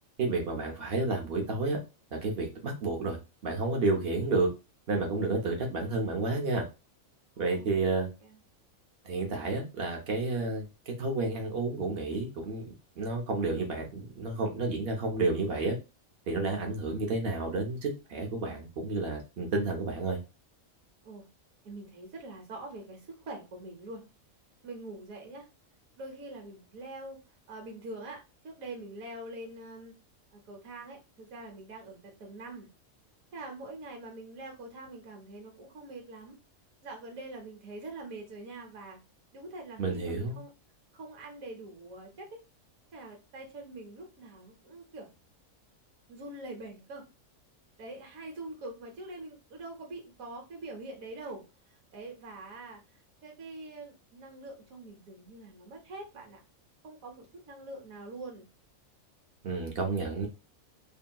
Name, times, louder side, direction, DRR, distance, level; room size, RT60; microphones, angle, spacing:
voice 1, 0.2-1.8 2.1-3.2 3.4-4.5 4.9-6.7 7.4-8.1 9.0-15.8 16.3-20.2 39.8-40.4 59.4-60.3, right 3 dB, 55° right, 2 dB, 0.8 m, -31 dB
voice 2, 7.4-7.7 8.2-8.4 21.0-21.3 21.6-24.0 24.6-25.5 26.0-27.2 27.5-29.9 30.3-32.7 33.3-36.4 36.8-39.0 39.3-40.5 40.9-42.4 42.9-45.1 46.1-47.0 47.8-51.4 51.7-56.4 56.8-58.5, right 2 dB, 80° right, 1 dB, 1.2 m, -44 dB
2.8 x 2.7 x 2.2 m, 0.27 s
omnidirectional pair, 1.5 m